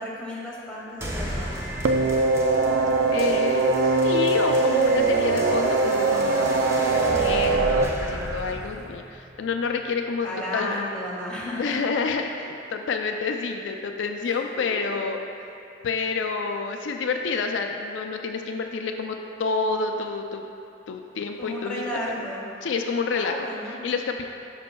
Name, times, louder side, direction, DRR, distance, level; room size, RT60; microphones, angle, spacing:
voice 1, 0.0-1.6 10.2-11.8 21.4-22.5 23.1-23.8, left 1 dB, 5° left, -6 dB, 1.4 m, -33 dB
sound 1, 1.0-10.0, equal, 15° right, 0.6 m, -34 dB
sound 2, 1.8-7.8, right 3 dB, 85° right, 0.4 m, -21 dB
voice 2, 3.1-10.3 10.5-10.8 11.6-15.2 15.8-20.5 20.9-21.8 22.2-22.3 22.6-23.4 23.6-24.3, left 4 dB, 80° left, 4 dB, 0.4 m, -28 dB
12.0 x 5.2 x 2.2 m, 2.7 s
head